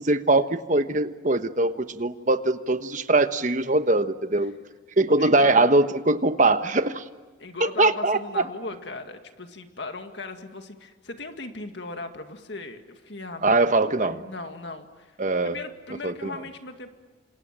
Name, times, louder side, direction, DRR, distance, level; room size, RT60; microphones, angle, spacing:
voice 1, 0.0-4.5 5.0-7.0 7.6-8.4 13.4-14.2 15.2-15.6 16.0-16.3, right 2 dB, 40° right, 9 dB, 1.2 m, -22 dB
voice 2, 5.2-5.6 7.4-13.6 14.0-15.2 15.4-16.9, left 3 dB, 60° left, 6 dB, 2.0 m, -37 dB
28.5 x 26.5 x 7.6 m, 1.3 s
head